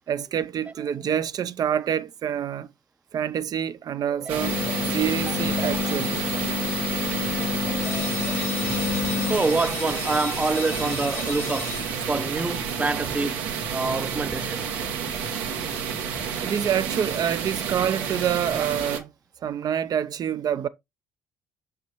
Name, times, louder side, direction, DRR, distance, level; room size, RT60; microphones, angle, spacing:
voice 1, 0.1-2.7 3.1-4.6 4.9-6.2 16.4-19.1 19.4-20.7, right 9 dB, 55° right, 0.6 m, -27 dB
voice 2, 4.1-5.0 5.3-5.4 5.9-6.0 7.5-11.8 12.1-13.4 13.7-14.8, right 3 dB, 20° right, 0.7 m, -28 dB
sound 1, 4.3-19.0, right 7 dB, 80° right, 1.4 m, -30 dB
sound 2, 4.4-9.4, left 6 dB, 50° left, 0.7 m, -28 dB
sound 3, 7.8-13.3, left 12 dB, 85° left, 0.9 m, -38 dB
6.6 x 5.6 x 3.0 m
hypercardioid pair, 65°, 8 cm